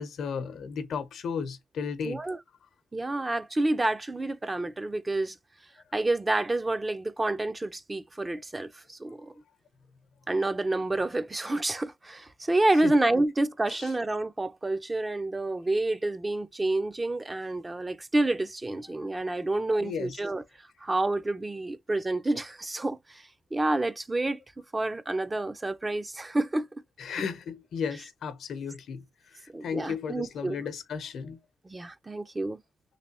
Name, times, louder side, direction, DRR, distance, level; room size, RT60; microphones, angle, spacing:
voice 1, 0.0-2.2 12.8-12.9 13.7-13.9 19.8-20.2 27.0-29.0 29.6-31.4, left 6 dB, 80° left, 0.8 m, -34 dB
voice 2, 2.0-2.4 2.9-5.4 5.9-9.3 10.3-20.4 20.8-24.4 24.7-26.7 29.5-30.6 31.6-32.6, right 2 dB, 25° right, 0.5 m, -28 dB
3.3 x 3.0 x 2.8 m
cardioid pair, 85°, 0 cm